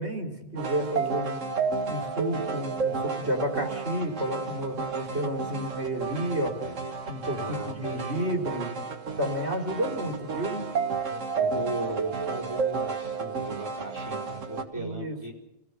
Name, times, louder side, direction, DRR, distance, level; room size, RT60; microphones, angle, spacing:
voice 1, 0.0-1.6 1.9-6.7 7.1-8.7 9.2-10.6 14.7-15.3, right 1 dB, 60° right, 2 dB, 3.6 m, -31 dB
sound 1, 0.6-14.6, right 5 dB, 80° right, 2.0 m, -32 dB
voice 2, 7.3-8.0 10.0-10.1 10.9-15.3, right 2 dB, 15° right, -2 dB, 4.3 m, -38 dB
29.0 x 17.0 x 6.9 m, 0.94 s
omnidirectional pair, 1.3 m